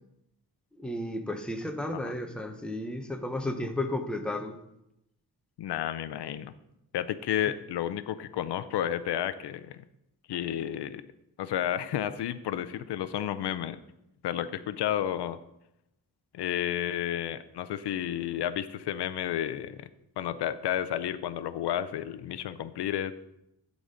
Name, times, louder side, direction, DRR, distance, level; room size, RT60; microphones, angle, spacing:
voice 1, 0.8-4.5, left 1 dB, ahead, 5 dB, 0.7 m, -33 dB
voice 2, 5.6-6.5 6.9-9.8 10.3-11.0 11.4-13.8 14.2-15.4 16.3-19.9 20.2-23.1, left 11 dB, 90° left, 13 dB, 0.5 m, -31 dB
11.0 x 4.1 x 5.1 m, 0.84 s
wide cardioid pair, 135°, 39 cm